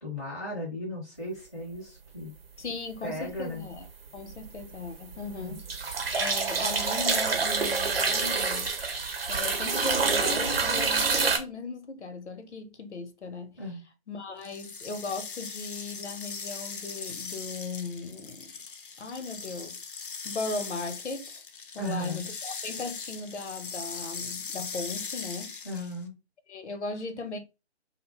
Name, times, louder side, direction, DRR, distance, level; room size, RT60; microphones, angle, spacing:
voice 1, 0.0-2.3 3.0-3.6 5.4-5.5 13.6-13.8 21.8-22.2 25.6-26.2, left 1 dB, ahead, 0.6 m, -36 dB
voice 2, 2.6-3.9 4.1-8.7 9.3-13.6 14.1-18.5 19.0-21.4 21.7-25.6 26.5-27.4, left 3 dB, 90° left, 0.7 m, -37 dB
sound 1, 3.2-3.8 4.2-11.4, right 4 dB, 60° right, 0.8 m, -27 dB
sound 2, 14.4-26.0, left 5 dB, 55° left, 0.4 m, -40 dB
2.5 x 2.1 x 2.8 m
figure-of-eight pair, 150°, 33 cm